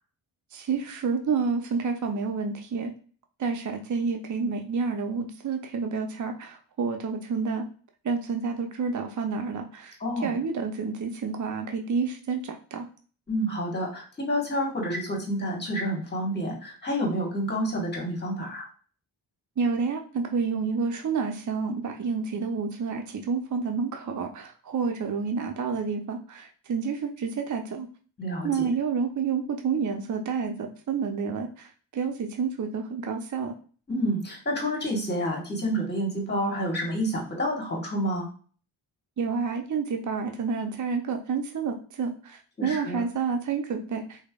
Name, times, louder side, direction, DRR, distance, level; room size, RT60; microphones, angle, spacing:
voice 1, 0.5-2.9 3.4-7.7 8.0-10.0 10.2-12.9 19.6-27.9 28.4-33.5 39.2-44.2, right 5 dB, 40° right, 4 dB, 0.6 m, -29 dB
voice 2, 10.0-10.4 13.3-18.7 28.2-28.7 33.9-38.3 42.6-43.0, equal, 20° left, -1 dB, 1.4 m, -29 dB
3.1 x 2.0 x 2.3 m, 0.40 s
supercardioid pair, 40°, 49 cm